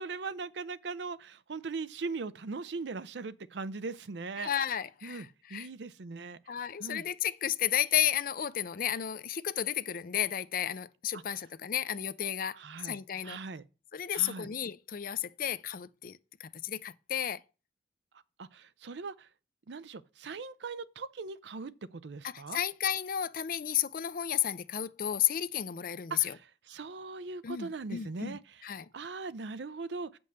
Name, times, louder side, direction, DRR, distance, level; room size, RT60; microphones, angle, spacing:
voice 1, 0.0-4.5 5.0-6.4 6.8-7.0 12.6-13.6 14.1-14.5 18.4-19.3 19.7-22.6 26.1-28.7 28.9-30.2, right 4 dB, 70° right, 0.5 m, -40 dB
voice 2, 4.4-5.7 6.5-13.4 13.9-17.4 22.2-26.4 27.4-28.9, left 10 dB, 50° left, 0.5 m, -33 dB
7.9 x 5.3 x 6.6 m
head